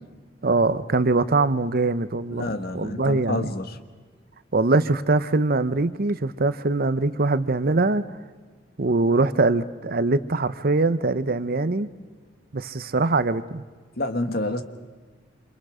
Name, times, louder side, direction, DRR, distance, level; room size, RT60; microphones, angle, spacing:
voice 1, 0.4-2.5 2.7-3.5 4.5-8.0 8.8-11.9 12.5-13.6, right 3 dB, 50° right, 13 dB, 0.9 m, -22 dB
voice 2, 2.3-3.8 14.0-14.6, left 2 dB, 55° left, 8 dB, 1.6 m, -28 dB
28.5 x 27.0 x 5.0 m, 1.5 s
head